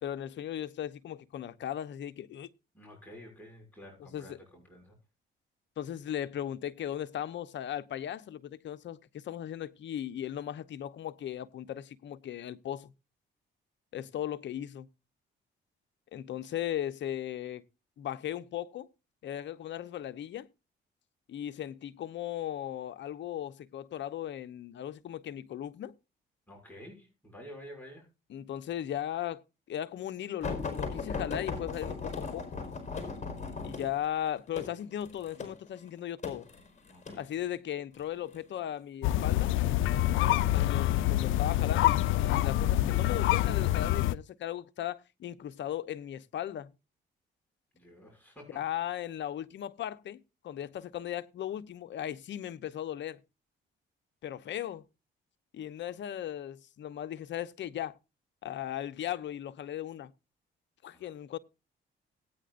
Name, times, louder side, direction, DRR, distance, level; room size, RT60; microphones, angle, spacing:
voice 1, 0.0-2.5 4.0-4.4 5.8-12.9 13.9-14.9 16.1-17.6 18.0-18.9 19.2-20.5 21.3-25.9 28.3-32.6 33.6-36.5 37.1-39.5 40.4-46.7 48.5-53.2 54.2-54.8 55.5-58.0 58.4-60.1 60.8-61.4, left 11 dB, 65° left, 0.9 m, -37 dB
voice 2, 2.7-5.0 26.5-28.1 36.9-37.2 47.7-48.6 60.9-61.1, equal, 10° left, 6.7 m, -50 dB
sound 1, 30.4-37.2 38.0-38.4 39.4-40.0 40.7-40.9 41.3-41.4, left 4 dB, 35° left, 4.7 m, -37 dB
sound 2, 39.0-44.1, left 14 dB, 80° left, 0.5 m, -26 dB
18.0 x 9.4 x 2.5 m
cardioid pair, 90°, 20 cm